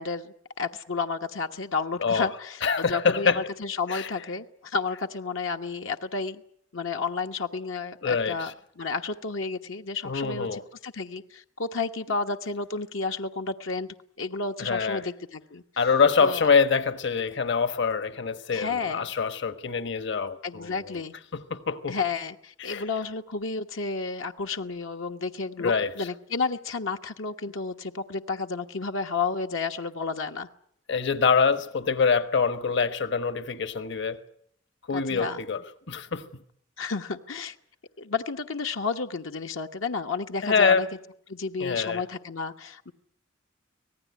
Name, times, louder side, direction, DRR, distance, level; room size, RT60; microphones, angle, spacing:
voice 1, 0.0-6.4 6.7-8.5 8.8-15.6 16.2-16.4 18.5-19.0 20.4-21.1 21.9-30.5 34.9-35.4 36.8-37.5 38.0-40.9 41.3-42.9, left 4 dB, 85° left, 1.3 m, -31 dB
voice 2, 2.0-2.3 2.6-3.5 3.9-4.1 8.0-8.5 10.0-10.6 14.6-15.1 15.8-20.9 21.3-22.0 22.6-22.8 25.6-26.1 30.9-34.2 34.9-36.4 40.4-40.9 41.6-42.0, left 5 dB, 65° left, 1.3 m, -25 dB
25.5 x 18.5 x 9.5 m
head